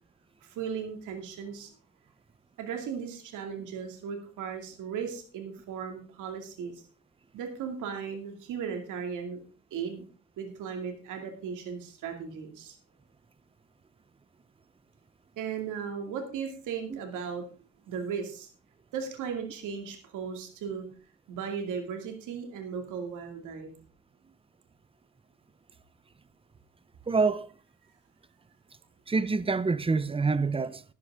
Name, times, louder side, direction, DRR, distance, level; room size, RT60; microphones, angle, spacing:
voice 1, 0.4-1.7 2.6-6.8 7.3-9.4 9.7-10.0 10.4-12.8 15.4-17.5 17.9-18.5 18.9-20.9 21.3-23.7, right 6 dB, 90° right, 2.4 m, -36 dB
voice 2, 27.1-27.5 29.1-30.8, right 4 dB, 20° right, 0.8 m, -26 dB
13.0 x 11.0 x 3.6 m
cardioid pair, 90°, 30 cm